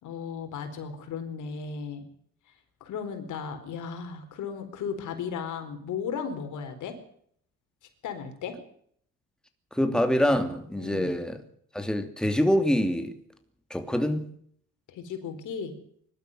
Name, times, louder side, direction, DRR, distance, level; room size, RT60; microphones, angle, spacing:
voice 1, 0.0-2.1 2.8-7.0 8.0-8.6 10.8-11.2 14.9-15.7, left 6 dB, 80° left, 4.3 m, -35 dB
voice 2, 9.7-11.4 11.7-13.1 13.7-14.2, equal, ahead, 2.8 m, -25 dB
22.5 x 12.5 x 9.2 m
cardioid pair, 90°, 30 cm